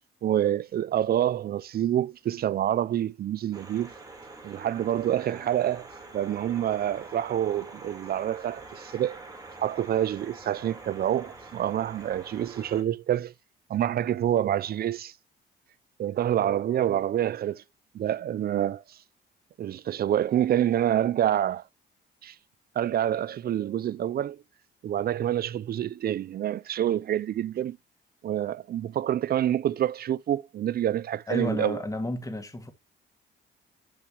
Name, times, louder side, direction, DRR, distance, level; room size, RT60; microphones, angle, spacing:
voice 1, 0.2-3.9 4.4-5.9 6.1-9.2 9.6-13.3 13.7-15.1 16.0-17.6 17.9-19.0 19.6-21.6 22.2-22.3 22.8-24.4 24.8-27.8 28.2-31.8, right 11 dB, 50° right, 0.4 m, -27 dB
sound 1, 3.5-12.8, right 3 dB, 20° right, 3.4 m, -45 dB
voice 2, 31.3-32.7, left 1 dB, 15° left, 1.9 m, -32 dB
12.0 x 5.7 x 2.9 m
cardioid pair, 90°, 20 cm